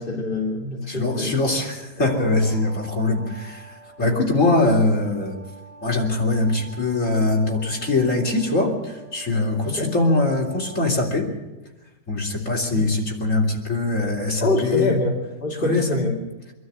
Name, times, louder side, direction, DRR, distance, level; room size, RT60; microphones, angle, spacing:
voice 1, 0.0-1.5 2.0-2.1 4.0-4.2 9.7-9.9 12.7-12.9 14.4-16.1, left 2 dB, 30° left, -3 dB, 2.9 m, -26 dB
voice 2, 0.9-5.4 5.8-11.3 12.1-14.9 15.6-16.0, left 2 dB, 45° left, 0 dB, 3.9 m, -22 dB
sound 1, 2.1-10.9, right 2 dB, 5° right, 4.6 m, -45 dB
25.0 x 12.5 x 8.6 m, 1.1 s
omnidirectional pair, 1.9 m